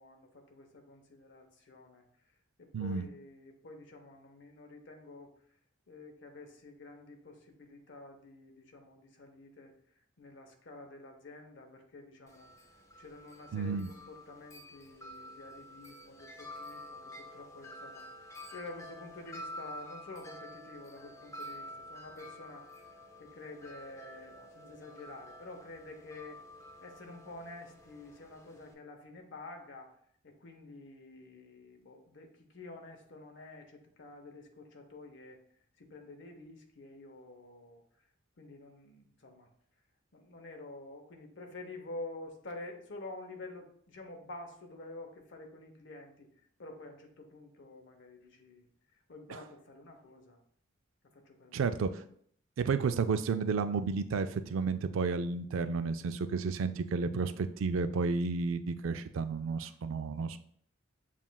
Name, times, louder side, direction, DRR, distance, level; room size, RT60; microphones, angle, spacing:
voice 1, 0.0-2.0 2.6-5.3 5.9-9.7 10.2-12.5 12.9-22.7 23.2-26.4 26.8-29.9 30.2-35.4 35.8-37.8 38.4-39.5 40.1-46.3 46.6-48.6 49.1-50.4 51.1-51.6, left 2 dB, 60° left, 4 dB, 0.7 m, -49 dB
voice 2, 2.7-3.1 13.5-13.9 49.3-49.4 51.5-51.9 52.6-60.4, right 4 dB, 75° right, 10 dB, 0.3 m, -32 dB
Wind chime, 12.3-28.7, left 1 dB, 15° left, 0.4 m, -49 dB
7.2 x 2.4 x 2.2 m, 0.63 s
head